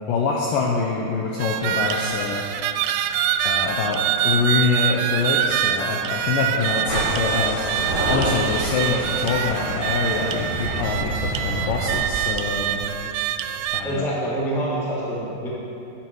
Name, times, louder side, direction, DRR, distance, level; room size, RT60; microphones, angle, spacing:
voice 1, 0.1-2.5 3.4-7.6 8.1-12.8 13.7-14.1, left 4 dB, 80° left, -1 dB, 2.0 m, -25 dB
sound 1, 1.4-13.8, right 9 dB, 85° right, 2.7 m, -25 dB
sound 2, 6.9-12.1, right 1 dB, 50° left, 3.5 m, -28 dB
voice 2, 13.8-15.5, right 1 dB, 5° left, -7 dB, 0.4 m, -26 dB
11.5 x 9.2 x 4.6 m, 3.0 s
omnidirectional pair, 4.8 m